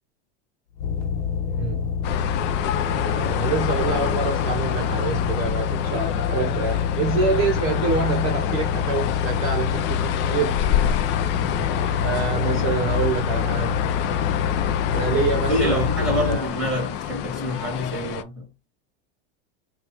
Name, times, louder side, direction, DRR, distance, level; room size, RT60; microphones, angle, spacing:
sound 1, 0.8-16.4, left 7 dB, 65° left, 0.9 m, -26 dB
voice 1, 1.5-1.9 2.9-10.6 12.0-13.9 14.9-16.5, right 5 dB, 35° right, 0.8 m, -26 dB
sound 2, 2.0-18.2, left 10 dB, 35° left, 0.4 m, -27 dB
voice 2, 15.5-18.5, equal, ahead, 2.6 m, -26 dB
5.1 x 2.4 x 2.9 m
supercardioid pair, 130°, 35 cm